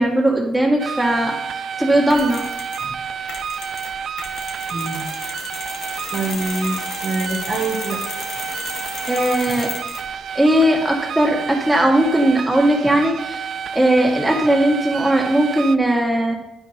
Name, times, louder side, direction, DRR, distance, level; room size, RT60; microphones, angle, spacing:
voice 1, 0.0-2.5 9.1-9.7 10.4-13.5 13.7-16.3, right 1 dB, 10° right, -1 dB, 1.9 m, -18 dB
sound 1, 0.8-15.8, right 7 dB, 65° right, 0.4 m, -30 dB
Mechanisms, 2.1-2.9 3.3-10.1, left 4 dB, 80° left, 1.5 m, -34 dB
voice 2, 4.7-5.0 6.1-8.0, right 2 dB, 45° right, -1 dB, 1.1 m, -25 dB
10.0 x 4.7 x 4.2 m, 0.93 s
cardioid pair, 90°, 0 cm